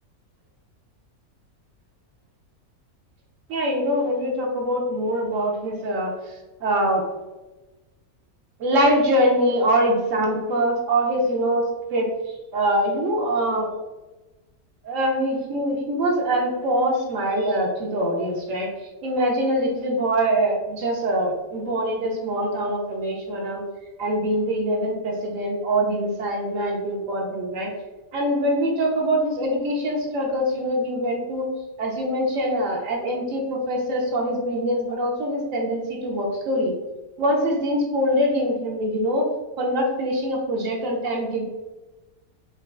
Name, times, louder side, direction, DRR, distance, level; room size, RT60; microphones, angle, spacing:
voice 1, 3.5-6.1 6.6-7.0 8.6-12.1 12.5-13.7 14.8-18.7 19.0-23.6 24.0-27.7 28.1-31.4 31.8-36.7 37.2-39.3 39.6-41.4, equal, 65° right, 0 dB, 1.0 m, -23 dB
5.2 x 2.2 x 2.3 m, 1.1 s
omnidirectional pair, 1.5 m